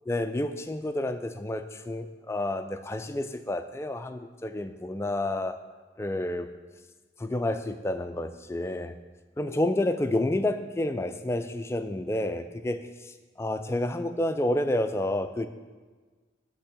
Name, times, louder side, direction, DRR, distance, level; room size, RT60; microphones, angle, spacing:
voice 1, 0.1-5.6 6.0-6.5 7.2-9.0 9.4-15.5, left 1 dB, 15° left, 9 dB, 0.3 m, -30 dB
10.0 x 3.4 x 6.7 m, 1.4 s
head